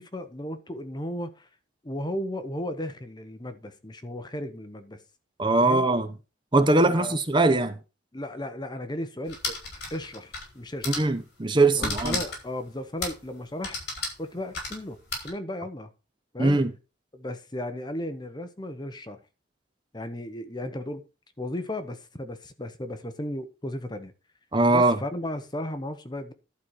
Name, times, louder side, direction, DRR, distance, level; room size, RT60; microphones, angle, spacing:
voice 1, 0.0-1.5 1.8-5.0 5.6-5.8 6.8-7.2 8.1-9.6 9.9-11.0 11.8-13.8 14.2-15.0 15.2-15.9 16.3-16.6 17.1-19.2 19.9-21.0 21.4-24.1 24.7-26.3, left 1 dB, 20° left, 1.0 m, -35 dB
voice 2, 5.4-6.1 6.5-7.8 10.9-12.2 16.4-16.7 24.5-25.0, right 2 dB, 25° right, 0.8 m, -21 dB
sound 1, 9.3-10.5 10.8-11.1 11.8-12.5 13.0-13.3 13.6-15.3, left 3 dB, 55° left, 4.5 m, -33 dB
11.5 x 4.5 x 6.4 m
head